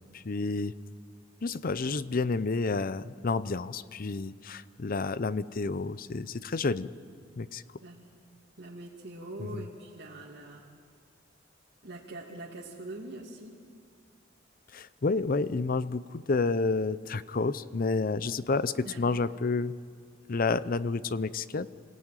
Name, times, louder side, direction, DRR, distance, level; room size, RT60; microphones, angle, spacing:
voice 1, 0.1-0.7 1.4-6.9 7.4-7.6 9.5-9.7 14.7-19.8 20.3-21.7, left 3 dB, 50° left, 16 dB, 0.6 m, -30 dB
voice 2, 7.8-8.1 8.6-10.7 11.8-13.6 18.8-19.0, right 2 dB, 65° right, -3 dB, 2.6 m, -43 dB
27.5 x 17.5 x 9.1 m, 2.1 s
head